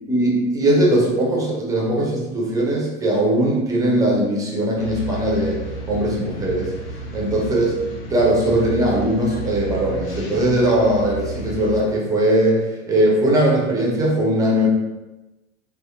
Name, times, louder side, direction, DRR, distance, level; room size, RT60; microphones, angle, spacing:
voice 1, 0.1-6.7 7.1-7.7 8.1-14.7, right 1 dB, 10° right, -3 dB, 0.4 m, -20 dB
sound 1, 4.8-11.8, right 3 dB, 45° left, 0.6 m, -32 dB
2.6 x 2.2 x 2.4 m, 1.0 s
figure-of-eight pair, 85°, 37 cm